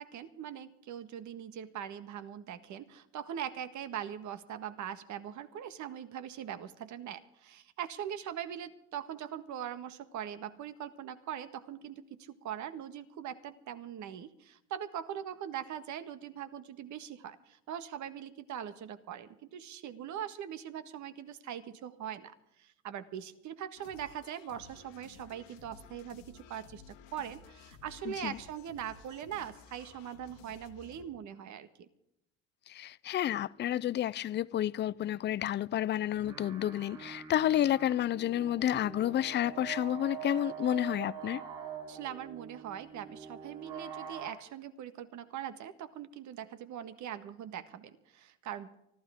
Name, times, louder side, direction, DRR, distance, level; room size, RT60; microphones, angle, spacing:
voice 1, 0.0-31.9 41.9-48.8, right 9 dB, 50° right, 1.6 m, -41 dB
sound 1, 23.8-31.0, left 6 dB, 85° left, 2.2 m, -55 dB
voice 2, 28.1-28.4 32.7-41.4, left 11 dB, 30° left, 0.5 m, -30 dB
sound 2, 36.1-44.3, right 8 dB, 65° right, 6.9 m, -45 dB
24.5 x 15.0 x 3.6 m
hypercardioid pair, 75°, 38 cm